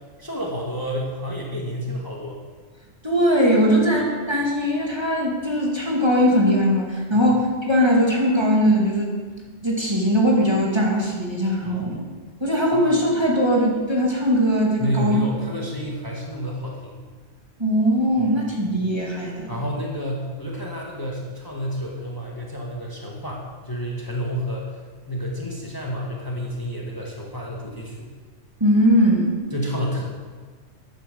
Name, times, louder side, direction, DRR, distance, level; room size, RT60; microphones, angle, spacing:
voice 1, 0.2-2.4 7.1-7.3 11.6-11.9 12.7-12.8 14.8-16.9 18.2-18.3 19.5-24.8 25.1-28.1 29.5-30.0, equal, 15° left, -2 dB, 1.8 m, -30 dB
voice 2, 3.0-9.1 9.6-12.0 12.4-15.2 17.6-19.5 28.6-29.4, equal, 20° right, -3 dB, 2.2 m, -20 dB
11.5 x 8.9 x 6.9 m, 1.5 s
omnidirectional pair, 1.3 m